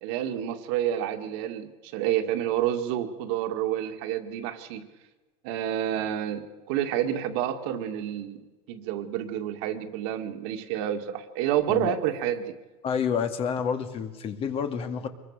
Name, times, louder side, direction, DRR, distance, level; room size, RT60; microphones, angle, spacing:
voice 1, 0.0-4.9 5.4-8.4 8.7-12.6, right 11 dB, 65° right, 6 dB, 2.2 m, -29 dB
voice 2, 12.8-15.1, left 7 dB, 35° left, 8 dB, 2.2 m, -29 dB
25.0 x 21.5 x 6.7 m, 1.2 s
supercardioid pair, 140°, 16 cm